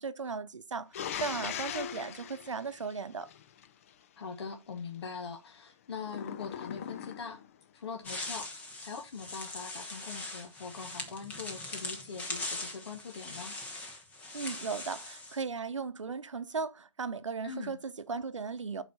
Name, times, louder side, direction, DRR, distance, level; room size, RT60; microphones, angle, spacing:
voice 1, 0.0-3.3 14.3-18.8, right 5 dB, 90° right, 0.7 m, -37 dB
sound 1, 0.9-3.7 6.1-7.5, left 9 dB, 30° left, 0.4 m, -40 dB
voice 2, 4.2-7.4 7.7-13.5 17.4-17.7, left 5 dB, 60° left, 1.0 m, -42 dB
sound 2, 8.0-15.4, left 2 dB, 10° left, 0.9 m, -41 dB
8.3 x 4.2 x 4.0 m
hypercardioid pair, 150°, 15 cm